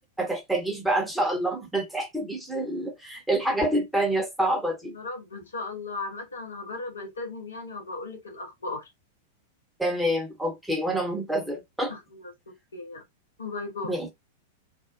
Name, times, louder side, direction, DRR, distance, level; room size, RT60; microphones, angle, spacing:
voice 1, 0.2-4.9 9.8-11.9 13.9-14.1, right 1 dB, 5° right, 0.9 m, -27 dB
voice 2, 4.8-8.9 11.9-13.0 13.4-13.9, left 3 dB, 75° left, 0.8 m, -37 dB
2.5 x 2.1 x 2.5 m
figure-of-eight pair, 95°, 0 cm